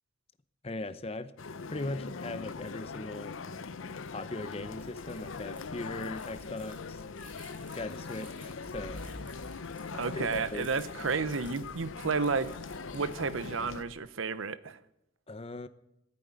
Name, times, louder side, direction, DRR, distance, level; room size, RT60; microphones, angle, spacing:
voice 1, 0.6-1.3 1.7-3.4 4.1-7.0 7.7-9.0 10.1-10.7 15.3-15.7, left 2 dB, 30° left, 0.7 m, -39 dB
sound 1, 1.4-13.8, left 4 dB, 80° left, 0.7 m, -41 dB
sound 2, 4.6-13.9, equal, 10° right, 6.9 m, -52 dB
voice 2, 9.9-12.5 12.9-14.8, right 4 dB, 80° right, 0.8 m, -32 dB
15.5 x 8.6 x 9.8 m
head